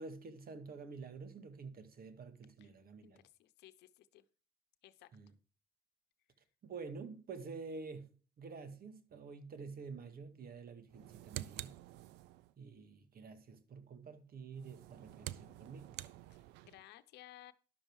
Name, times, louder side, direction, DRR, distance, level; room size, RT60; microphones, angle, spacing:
voice 1, 0.0-3.2 5.1-5.3 6.6-11.7 12.6-16.0, right 4 dB, 60° right, 1.9 m, -49 dB
voice 2, 3.0-4.3 4.8-5.1 16.3-17.5, left 14 dB, 85° left, 0.8 m, -58 dB
sound 1, 10.9-12.5 14.5-16.8, right 15 dB, 90° right, 0.5 m, -48 dB
11.5 x 6.9 x 4.7 m
supercardioid pair, 55°, 17 cm